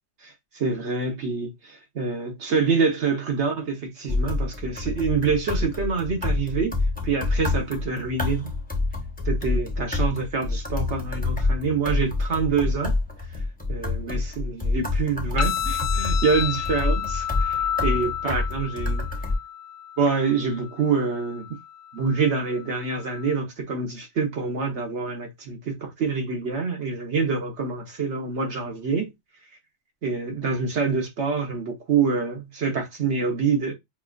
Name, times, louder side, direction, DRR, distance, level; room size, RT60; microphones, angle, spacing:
voice 1, 0.2-6.7 7.0-8.5 9.2-12.9 13.7-19.1 20.0-21.5 21.9-29.1 30.0-33.7, right 5 dB, 70° right, 1.4 m, -26 dB
sound 1, 4.1-19.4, left 3 dB, 10° left, 0.7 m, -27 dB
sound 2, 15.4-23.4, left 10 dB, 70° left, 0.9 m, -32 dB
5.4 x 2.6 x 2.3 m
omnidirectional pair, 1.2 m